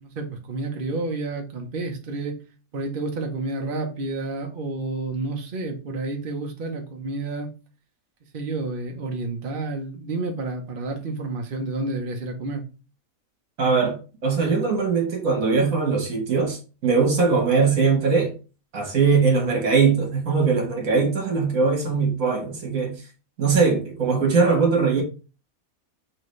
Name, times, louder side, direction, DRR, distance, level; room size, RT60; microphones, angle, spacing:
voice 1, 0.0-2.4 2.7-7.5 8.3-12.6, right 3 dB, 45° right, 0.9 m, -30 dB
voice 2, 13.6-18.3 18.7-23.0 23.4-25.0, right 5 dB, 70° right, 1.8 m, -21 dB
6.0 x 2.8 x 3.2 m
omnidirectional pair, 1.5 m